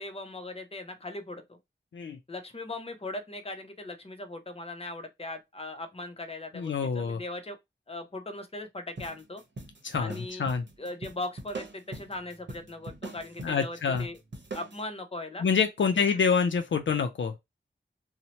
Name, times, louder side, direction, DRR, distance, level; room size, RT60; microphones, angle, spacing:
voice 1, 0.0-1.6 2.3-7.6 7.9-9.4 10.0-10.4 10.8-14.2 14.5-15.4 15.8-16.1, left 2 dB, 30° left, 0.7 m, -39 dB
voice 2, 6.5-7.2 9.8-10.6 13.4-14.1 15.4-17.3, left 6 dB, 70° left, 0.4 m, -27 dB
sound 1, 9.0-14.8, right 2 dB, 65° right, 0.9 m, -42 dB
2.7 x 2.1 x 2.9 m
wide cardioid pair, 60°, 20 cm